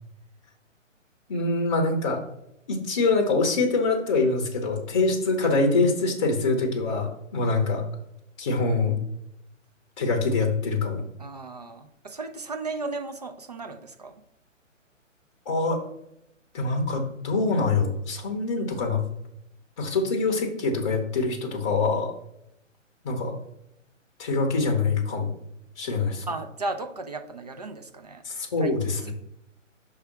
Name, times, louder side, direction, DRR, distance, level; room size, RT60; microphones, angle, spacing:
voice 1, 1.3-2.2 2.7-7.8 8.4-9.0 10.0-11.0 15.5-15.8 16.5-19.0 19.8-22.1 23.0-23.3 24.2-25.3 25.8-26.2 28.2-29.1, left 3 dB, 25° left, 1 dB, 0.7 m, -24 dB
voice 2, 11.2-14.1 26.3-28.2 28.6-28.7, right 3 dB, 35° right, 7 dB, 0.4 m, -35 dB
5.6 x 3.4 x 5.8 m, 0.81 s
figure-of-eight pair, 145°, 39 cm